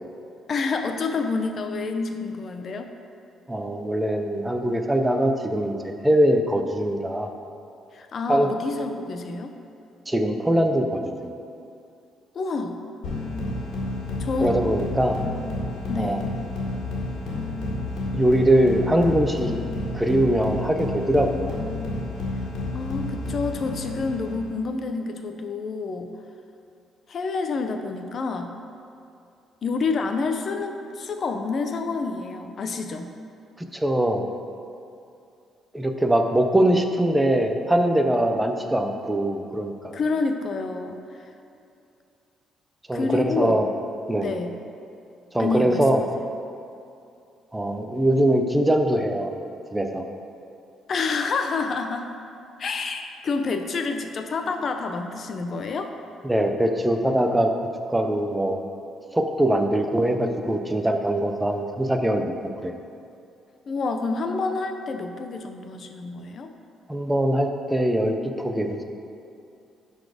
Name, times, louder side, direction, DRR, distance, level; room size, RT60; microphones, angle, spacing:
voice 1, 0.5-2.9 7.9-9.6 12.3-12.8 14.2-14.6 15.9-16.3 22.7-26.1 27.1-28.5 29.6-33.1 39.9-41.2 42.9-43.6 44.2-44.6 45.4-46.1 50.9-52.1 52.6-55.9 63.7-66.5, left 4 dB, 40° left, 6 dB, 0.6 m, -28 dB
voice 2, 3.5-7.3 8.3-8.5 10.1-11.3 14.4-15.2 16.0-16.2 18.1-19.5 19.9-21.6 33.7-34.3 35.7-40.0 42.9-43.7 44.1-44.3 45.3-46.0 47.5-49.3 49.7-50.1 56.2-57.5 57.9-58.6 59.1-62.8 66.9-68.8, right 1 dB, 5° right, 5 dB, 0.6 m, -22 dB
sound 1, 13.0-24.5, left 2 dB, 80° left, 1.8 m, -30 dB
11.0 x 4.2 x 4.9 m, 2.6 s
cardioid pair, 145°, 0 cm